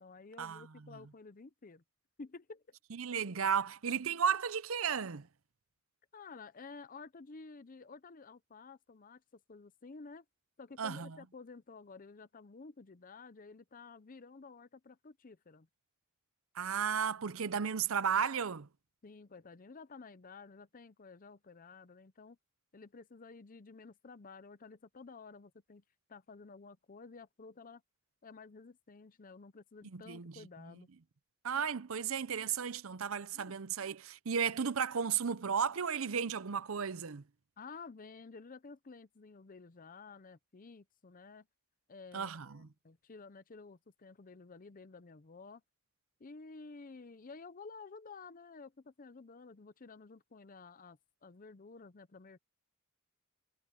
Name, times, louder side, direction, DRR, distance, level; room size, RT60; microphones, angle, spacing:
voice 1, 0.0-1.8 2.2-2.8 6.1-10.2 10.6-15.7 19.0-22.4 22.7-25.8 26.1-27.8 28.2-30.9 33.3-33.6 37.6-41.5 41.9-45.6 46.2-52.4, left 4 dB, 40° left, 0.6 m, -52 dB
voice 2, 2.9-5.3 10.8-11.2 16.5-18.7 29.9-30.4 31.4-37.2 42.1-42.7, right 7 dB, 65° right, 0.7 m, -34 dB
head